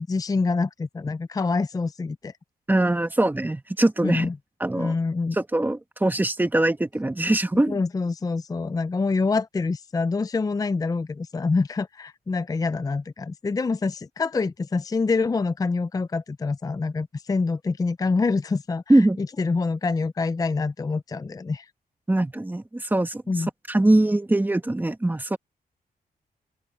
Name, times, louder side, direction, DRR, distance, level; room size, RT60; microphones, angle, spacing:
voice 1, 0.0-2.3 4.0-4.4 4.7-5.4 7.7-21.7 23.3-23.5, left 4 dB, 25° left, 0.5 m, -26 dB
voice 2, 2.7-4.3 4.6-4.9 5.3-7.8 18.9-19.2 22.1-23.2 23.7-25.4, right 1 dB, 10° right, 1.7 m, -22 dB
open air
cardioid pair, 105°, 16 cm